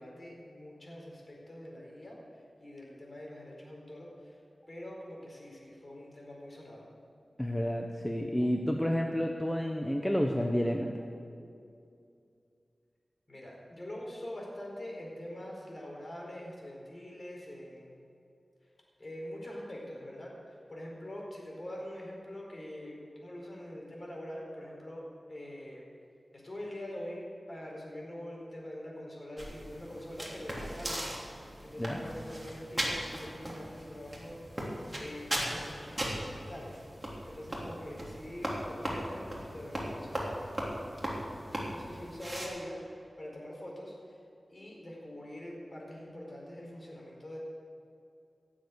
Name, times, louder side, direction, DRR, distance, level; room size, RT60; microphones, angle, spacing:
voice 1, 0.0-4.4 4.7-6.9 13.3-17.9 19.0-25.0 25.3-25.8 26.3-36.8 37.3-40.8 41.6-44.2 44.5-47.4, left 1 dB, 40° left, -2 dB, 4.5 m, -44 dB
voice 2, 7.4-10.9 31.8-32.0, equal, 5° left, 2 dB, 0.9 m, -30 dB
sound 1, 29.4-42.5, equal, 15° right, 3.2 m, -38 dB
16.5 x 7.5 x 8.1 m, 2.5 s
wide cardioid pair, 70°, 0 cm